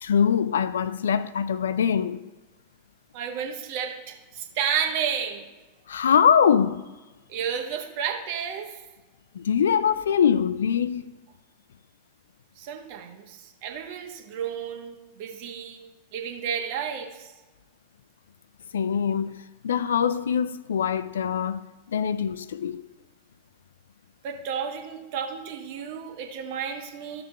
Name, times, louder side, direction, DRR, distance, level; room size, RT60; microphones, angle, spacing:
voice 1, 0.0-2.2 5.9-6.8 9.3-11.1 18.7-19.4 19.6-22.8, left 7 dB, 65° left, 0.4 m, -23 dB
voice 2, 3.1-5.5 7.3-8.7 12.6-15.8 16.1-17.3 24.2-27.2, right 7 dB, 50° right, 1.4 m, -32 dB
13.5 x 6.7 x 3.3 m
figure-of-eight pair, 90°, 0 cm